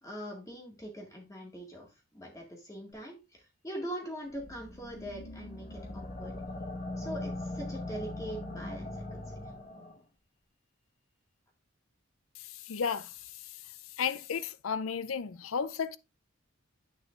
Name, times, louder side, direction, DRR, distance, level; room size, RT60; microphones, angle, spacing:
voice 1, 0.0-6.4 7.0-9.3, equal, 15° left, 1.8 m, -42 dB
sound 1, 4.3-10.0, left 1 dB, 35° left, 1.4 m, -40 dB
voice 2, 12.7-13.1 14.0-16.0, left 6 dB, 80° left, 0.5 m, -33 dB
9.0 x 6.8 x 2.5 m
head